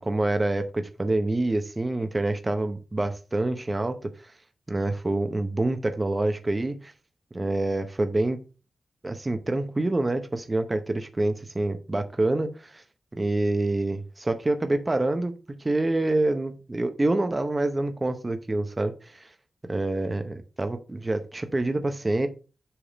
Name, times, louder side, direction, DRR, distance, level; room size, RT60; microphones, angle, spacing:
voice 1, 0.0-4.3 4.7-6.9 7.3-8.4 9.0-12.8 13.1-19.3 19.7-22.3, right 2 dB, 25° right, 7 dB, 0.7 m, -27 dB
7.1 x 3.6 x 5.0 m, 0.33 s
wide cardioid pair, 140°, 0 cm